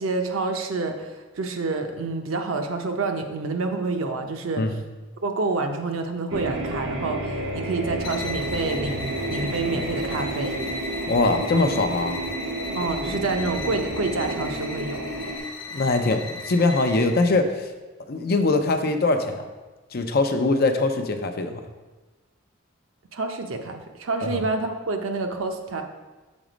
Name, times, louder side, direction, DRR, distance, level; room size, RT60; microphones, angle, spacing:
voice 1, 0.0-4.6 5.2-10.6 12.7-15.0 23.1-25.8, right 3 dB, 85° right, 5 dB, 0.7 m, -28 dB
sound 1, 6.3-15.4, right 1 dB, 65° right, 1.3 m, -31 dB
sound 2, 8.0-17.3, left 2 dB, 25° left, 1.2 m, -37 dB
voice 2, 11.0-12.2 15.7-17.7 18.1-19.5 19.9-21.6 24.2-24.4, left 3 dB, 50° left, 6 dB, 0.6 m, -22 dB
6.2 x 4.0 x 5.1 m, 1.2 s
head